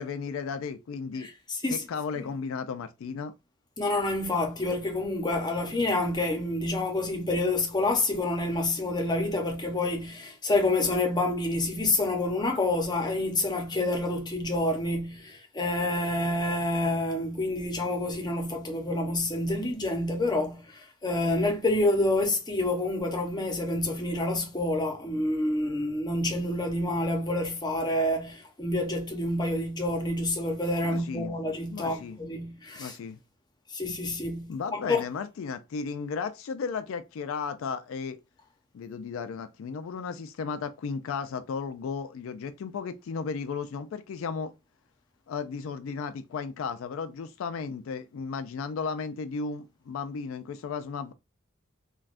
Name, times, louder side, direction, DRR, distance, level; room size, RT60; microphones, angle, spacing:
voice 1, 0.0-1.3 1.7-3.3 30.8-31.3 31.7-32.2 32.8-33.2 34.5-38.2 38.7-44.5 45.3-51.1, left 5 dB, 80° left, 0.3 m, -34 dB
voice 2, 1.2-1.8 3.8-33.0 33.7-35.0, left 2 dB, 20° left, 0.7 m, -28 dB
3.3 x 2.2 x 2.5 m
head